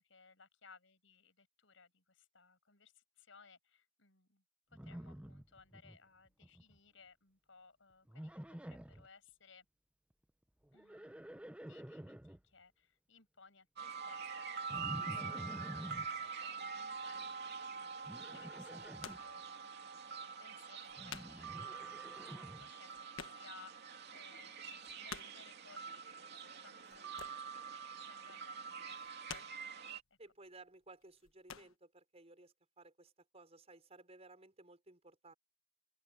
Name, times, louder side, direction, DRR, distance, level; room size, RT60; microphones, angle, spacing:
voice 1, 0.0-4.4 4.7-9.7 10.7-23.8 24.1-29.8, left 5 dB, 70° left, 6.3 m, -63 dB
Livestock farm animals working animals, 4.7-6.0 6.3-6.8 8.1-9.1 10.7-12.4 14.7-16.1 18.1-19.2 21.0-22.7, equal, 5° right, 0.5 m, -49 dB
sound 1, 13.8-30.0, right 5 dB, 55° right, 3.0 m, -45 dB
sound 2, 17.1-17.5 18.6-19.4 19.8-19.9 20.5-20.6 20.7-21.5 21.8-21.9 22.2-22.3 22.5-23.8 24.1-24.2 24.6-25.5 26.8-27.6 27.9-28.3 28.9-29.8 30.4-30.7 31.0-31.8, left 7 dB, 90° left, 1.3 m, -51 dB
voice 2, 30.2-35.3, right 2 dB, 30° right, 5.5 m, -58 dB
open air
head